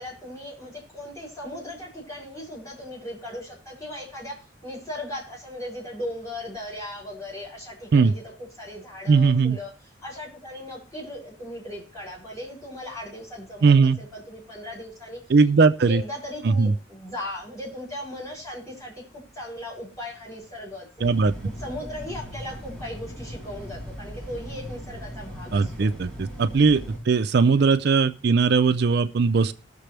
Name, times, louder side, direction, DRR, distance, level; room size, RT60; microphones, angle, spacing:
voice 1, 0.0-9.7 10.0-15.3 15.9-21.1 21.4-25.9, left 1 dB, 20° left, -6 dB, 6.5 m, -37 dB
voice 2, 9.1-9.6 13.6-14.0 15.3-16.0 16.4-16.7 21.0-21.3 25.5-29.5, right 4 dB, 60° right, 11 dB, 0.4 m, -19 dB
sound 1, 21.0-27.0, equal, ahead, 6.2 m, -39 dB
20.0 x 6.8 x 3.3 m, 0.34 s
head